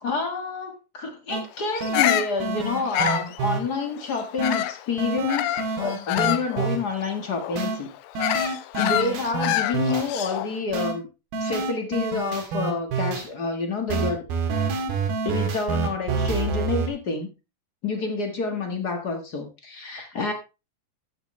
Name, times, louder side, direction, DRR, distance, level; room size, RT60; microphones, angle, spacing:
voice 1, 0.0-5.5 5.8-7.9 8.8-11.1 11.4-14.2 15.2-17.3 17.8-20.3, left 4 dB, 45° left, 5 dB, 1.3 m, -28 dB
sound 1, 1.3-1.4 1.8-3.6 4.4-4.6 5.0-6.8 7.6-7.8 8.1-10.1 10.7-10.9 11.3-13.2 13.9-16.9, right 4 dB, 90° right, 3.8 m, -27 dB
Bird vocalization bird call bird song, 1.7-4.9 5.3-10.6, left 14 dB, 80° left, 2.2 m, -27 dB
14.0 x 8.0 x 3.2 m, 0.29 s
omnidirectional pair, 4.2 m